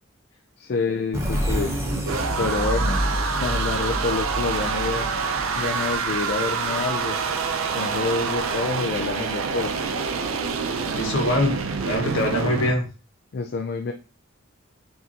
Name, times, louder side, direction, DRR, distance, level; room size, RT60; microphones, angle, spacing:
voice 1, 0.6-1.7 2.4-3.0 3.4-5.1 5.6-7.2 7.7-9.8 13.3-13.9, left 4 dB, 50° left, 0.4 m, -27 dB
sound 1, 1.1-6.7, equal, 15° right, 0.9 m, -28 dB
sound 2, 1.5-12.7, right 5 dB, 80° right, 0.5 m, -27 dB
voice 2, 10.9-12.9, left 1 dB, 65° left, 1.2 m, -24 dB
5.7 x 2.7 x 2.8 m
head